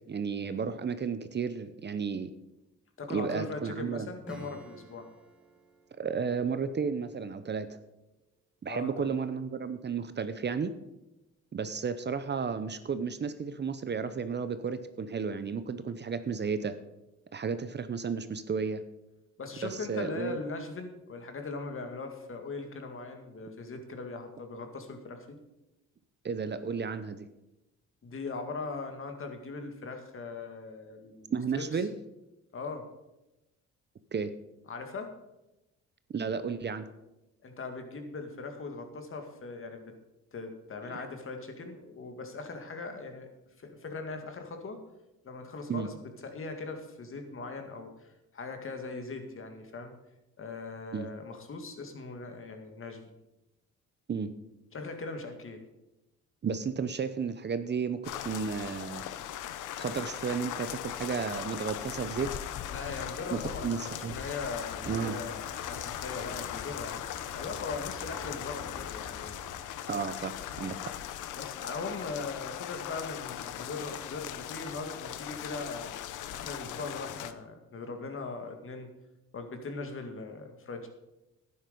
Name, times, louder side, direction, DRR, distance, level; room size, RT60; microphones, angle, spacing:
voice 1, 0.1-2.3 3.1-4.1 6.0-7.7 8.6-10.7 11.5-16.7 17.3-18.8 19.6-20.4 26.2-27.3 31.3-31.9 34.1-34.3 36.1-36.9 40.8-41.1 45.7-45.9 50.9-51.1 54.1-54.3 56.4-59.0 59.8-62.3 63.3-63.4 63.6-64.1 64.9-65.2 69.9-70.8, right 6 dB, 35° right, 11 dB, 0.8 m, -33 dB
voice 2, 3.0-5.1 8.7-9.1 19.4-25.4 28.0-31.7 32.5-32.9 34.7-35.1 37.4-39.9 40.3-43.3 43.6-44.8 45.2-50.0 50.4-53.1 54.7-55.6 62.7-67.0 67.4-69.4 71.3-75.9 76.3-78.9 79.3-80.9, left 3 dB, 45° left, 5 dB, 2.2 m, -40 dB
Acoustic guitar / Strum, 4.2-8.5, right 1 dB, 5° right, 2.1 m, -52 dB
sound 1, 58.0-77.3, left 11 dB, 85° left, 0.8 m, -39 dB
Aircraft, 64.1-69.9, left 3 dB, 65° left, 3.2 m, -48 dB
11.5 x 9.7 x 5.3 m, 0.96 s
cardioid pair, 90°, 30 cm